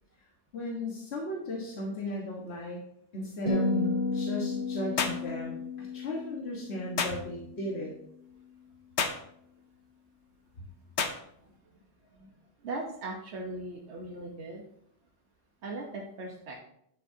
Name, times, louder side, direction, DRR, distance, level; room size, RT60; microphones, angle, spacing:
voice 1, 0.5-2.8 3.1-7.9 12.0-12.3, left 1 dB, 70° left, -3 dB, 1.7 m, -36 dB
sound 1, 3.5-7.8, left 3 dB, 40° left, 2.5 m, -33 dB
sound 2, 5.0-5.2 7.0-7.2 9.0-9.2 11.0-11.2, left 5 dB, 90° left, 1.2 m, -29 dB
voice 2, 12.6-14.6 15.6-16.6, right 2 dB, 80° right, -1 dB, 1.4 m, -38 dB
10.0 x 8.5 x 2.8 m, 0.72 s
omnidirectional pair, 1.1 m